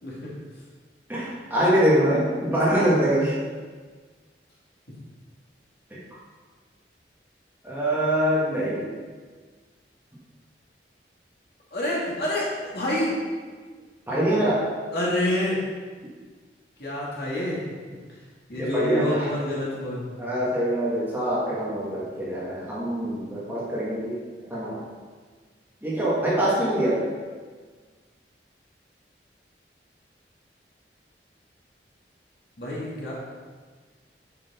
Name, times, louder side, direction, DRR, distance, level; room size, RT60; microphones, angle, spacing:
voice 1, 1.1-3.3 5.9-6.0 7.6-8.9 14.1-14.6 18.5-19.3 20.2-24.2 24.5-24.8 25.8-27.1, right 1 dB, 10° right, -7 dB, 1.6 m, -24 dB
voice 2, 11.7-13.2 14.9-15.6 16.8-17.6 18.5-20.1 32.6-33.1, left 1 dB, 60° left, -6 dB, 2.3 m, -27 dB
7.2 x 6.5 x 4.3 m, 1.5 s
head